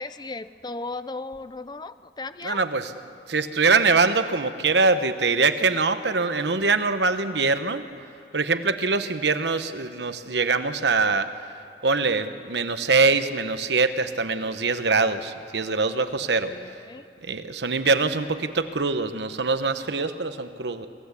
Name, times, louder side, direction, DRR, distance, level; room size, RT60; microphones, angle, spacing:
voice 1, 0.0-2.6 16.2-17.1, left 3 dB, 25° left, 13 dB, 0.6 m, -36 dB
voice 2, 2.4-2.9 3.3-7.9 8.3-11.3 11.8-16.5 17.2-20.9, right 4 dB, 80° right, 10 dB, 1.1 m, -23 dB
27.5 x 15.5 x 8.3 m, 2.5 s
head